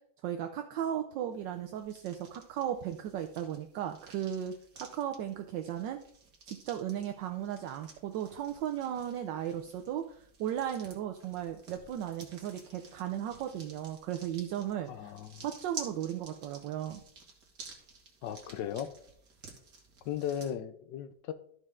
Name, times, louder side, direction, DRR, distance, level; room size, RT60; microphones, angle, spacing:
voice 1, 0.2-6.0 6.5-15.1 15.4-17.0, right 10 dB, 75° right, 6 dB, 1.2 m, -36 dB
sound 1, 1.3-20.5, right 4 dB, 50° right, 2.0 m, -52 dB
voice 2, 14.9-15.4 18.2-18.9 20.0-21.3, left 9 dB, 75° left, 11 dB, 1.2 m, -36 dB
12.5 x 5.4 x 3.6 m, 0.63 s
omnidirectional pair, 2.1 m